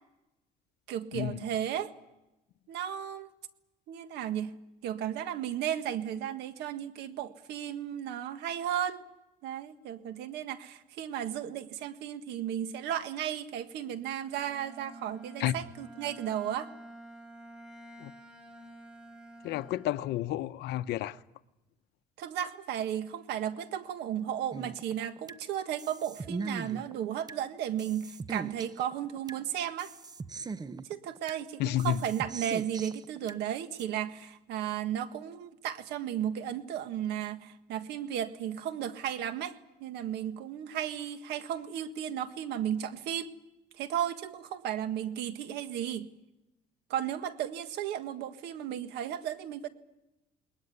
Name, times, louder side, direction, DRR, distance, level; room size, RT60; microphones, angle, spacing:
voice 1, 0.9-1.9 2.7-3.3 3.9-4.6 4.8-9.0 9.4-16.7 22.2-29.9 30.9-43.3 43.8-46.1 46.9-49.7, right 10 dB, 85° right, 1.7 m, -34 dB
Bowed string instrument, 14.2-20.3, right 1 dB, 5° right, 4.9 m, -50 dB
voice 2, 19.4-21.2 31.6-32.0, left 13 dB, 80° left, 0.8 m, -31 dB
sound 1, 24.5-25.4 25.8-27.4 27.8-29.4 29.8-31.4 31.8-33.4 33.8-33.9, right 4 dB, 25° right, 0.8 m, -40 dB
21.0 x 20.5 x 9.7 m
cardioid pair, 110°, 17 cm